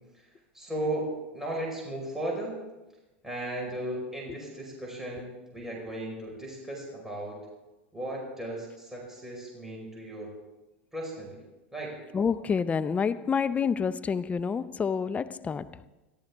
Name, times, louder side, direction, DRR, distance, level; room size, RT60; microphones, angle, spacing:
voice 1, 0.5-2.6 3.2-7.4 7.9-10.3 10.9-11.4 11.7-12.0, right 1 dB, 5° right, -2 dB, 5.1 m, -36 dB
voice 2, 12.1-15.8, left 6 dB, 20° left, 13 dB, 0.7 m, -28 dB
22.5 x 14.0 x 3.6 m, 1.1 s
hypercardioid pair, 100°, 7 cm